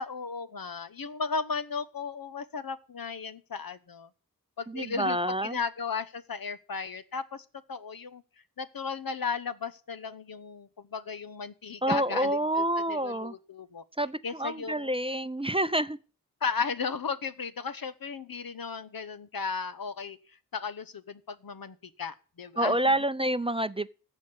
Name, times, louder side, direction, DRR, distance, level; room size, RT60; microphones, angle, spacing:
voice 1, 0.0-4.1 4.6-8.2 8.6-13.8 14.2-14.9 16.4-20.2 20.5-23.0, left 5 dB, 75° left, 1.0 m, -35 dB
voice 2, 4.7-5.6 11.8-13.3 14.0-16.0 22.6-23.9, right 1 dB, 15° right, 0.5 m, -28 dB
15.0 x 5.2 x 8.1 m
wide cardioid pair, 50°, 35 cm